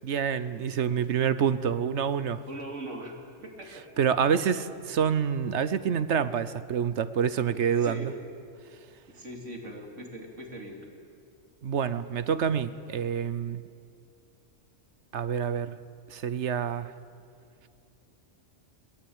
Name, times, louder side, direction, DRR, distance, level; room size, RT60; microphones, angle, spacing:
voice 1, 0.0-2.4 4.0-8.1 11.6-13.6 15.1-15.8 16.1-16.9, right 7 dB, 70° right, 14 dB, 1.1 m, -27 dB
voice 2, 2.5-3.8 7.8-8.1 9.1-10.9, right 1 dB, 90° right, 1 dB, 3.4 m, -40 dB
21.5 x 19.0 x 8.8 m, 2.4 s
omnidirectional pair, 1.2 m